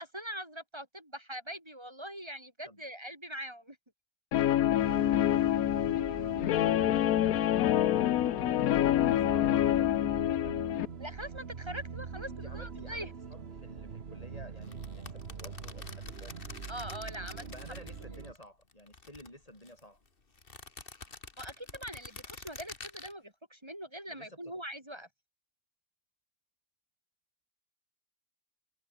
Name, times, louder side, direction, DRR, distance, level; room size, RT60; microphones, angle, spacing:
voice 1, 0.0-3.8 11.0-13.1 16.7-17.5 18.1-18.2 21.4-25.1, equal, 20° right, 4.2 m, -42 dB
Guitar, 4.3-10.9, left 12 dB, 85° left, 1.2 m, -27 dB
sound 1, 4.8-18.3, right 5 dB, 45° right, 1.6 m, -43 dB
voice 2, 8.8-10.6 12.2-16.3 17.4-20.0 24.1-24.5, left 1 dB, 25° left, 7.0 m, -52 dB
sound 2, 14.6-18.4 18.7-19.8 20.4-23.1, left 4 dB, 40° left, 2.2 m, -47 dB
omnidirectional pair, 1.5 m